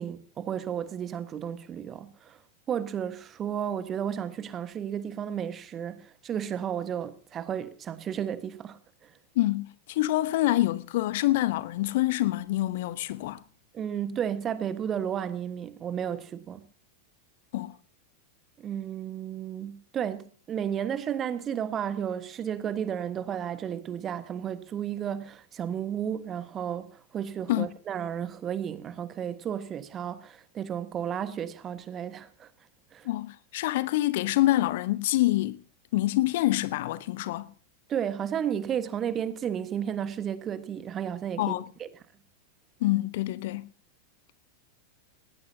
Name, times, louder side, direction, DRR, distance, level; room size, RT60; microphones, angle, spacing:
voice 1, 0.0-2.4 2.7-9.1 13.7-16.6 18.6-32.5 32.9-33.1 37.9-41.9, right 9 dB, 25° right, 1.4 m, -33 dB
voice 2, 9.3-13.4 17.5-17.7 27.5-27.7 33.0-35.6 35.9-37.5 41.4-41.6 42.8-43.7, left 16 dB, 50° left, 0.9 m, -26 dB
19.0 x 18.0 x 2.8 m
figure-of-eight pair, 90°, 0 cm